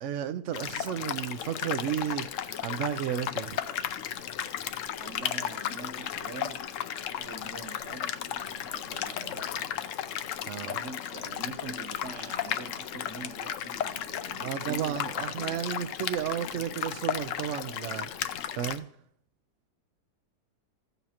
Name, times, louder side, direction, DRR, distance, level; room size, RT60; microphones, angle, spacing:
voice 1, 0.0-3.6 10.5-10.8 14.4-18.1 18.6-18.9, right 10 dB, 85° right, 0.6 m, -33 dB
sound 1, 0.5-18.8, left 10 dB, 70° left, 0.7 m, -35 dB
voice 2, 5.0-6.7 7.0-9.7 10.6-15.6, right 4 dB, 45° right, 1.0 m, -44 dB
15.5 x 7.1 x 2.9 m
omnidirectional pair, 1.9 m